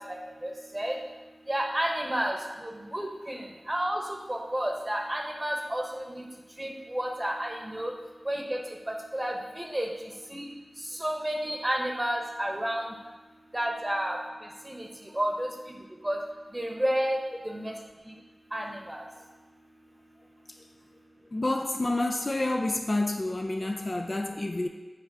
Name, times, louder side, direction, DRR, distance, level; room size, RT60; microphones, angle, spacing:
voice 1, 0.4-0.9 1.5-2.4 2.6-4.0 4.3-6.0 6.6-7.9 8.3-8.6 9.1-9.9 10.3-10.5 11.0-12.8 13.5-14.2 14.7-14.9 15.2-15.5 16.0-16.2 16.5-17.2 17.4-17.7 18.5-19.0, right 1 dB, 20° right, 1 dB, 1.0 m, -30 dB
voice 2, 21.3-24.7, left 2 dB, 45° left, 3 dB, 0.4 m, -28 dB
7.8 x 3.4 x 4.8 m, 1.3 s
wide cardioid pair, 70°, 0 cm